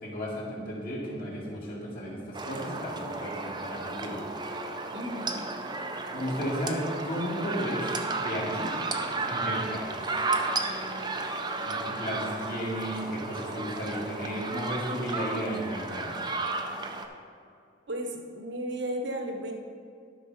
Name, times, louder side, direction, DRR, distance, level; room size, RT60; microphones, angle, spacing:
voice 1, 0.0-4.2 6.1-8.7 9.3-9.9 11.6-16.1, equal, 50° left, -5 dB, 2.3 m, -34 dB
sound 1, 2.3-17.1, right 3 dB, 20° right, 0.5 m, -33 dB
voice 2, 4.9-5.5 17.9-19.5, right 1 dB, 65° right, 3 dB, 1.1 m, -34 dB
11.5 x 6.0 x 4.2 m, 2.4 s
head